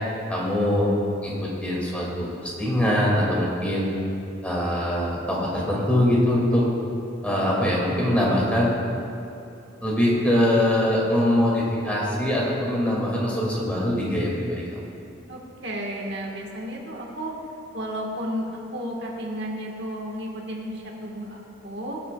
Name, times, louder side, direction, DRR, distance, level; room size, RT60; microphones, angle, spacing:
voice 1, 0.3-0.9 1.2-3.9 4.4-6.6 7.2-8.7 9.8-14.9, left 1 dB, 5° left, -5 dB, 2.0 m, -23 dB
voice 2, 15.3-17.3 17.7-22.0, equal, 60° right, -1 dB, 1.4 m, -33 dB
20.0 x 8.4 x 2.3 m, 2.7 s
head